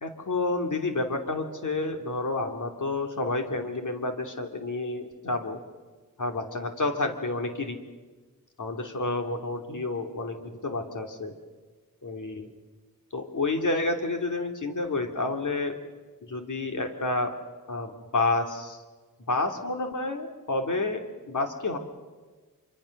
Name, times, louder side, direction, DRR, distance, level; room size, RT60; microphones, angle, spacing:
voice 1, 0.0-5.6 6.2-7.8 8.6-11.3 12.0-12.5 13.1-15.7 16.3-17.3 17.7-18.8 19.3-21.0 21.3-21.8, left 2 dB, 60° left, 4 dB, 2.9 m, -29 dB
26.0 x 24.5 x 6.6 m, 1.3 s
cardioid pair, 70°, 34 cm